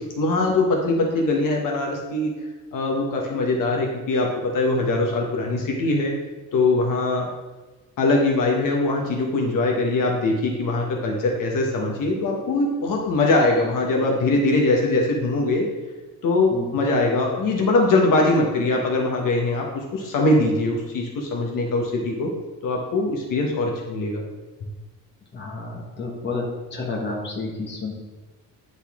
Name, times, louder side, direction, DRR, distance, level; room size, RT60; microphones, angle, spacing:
voice 1, 0.2-2.3 2.7-6.1 6.5-7.3 8.0-15.7 16.2-22.3 22.6-24.2, left 2 dB, 60° left, 0 dB, 1.1 m, -22 dB
voice 2, 25.3-27.9, left 3 dB, 30° left, -1 dB, 1.3 m, -30 dB
10.0 x 4.1 x 3.6 m, 1.2 s
cardioid pair, 170°, 36 cm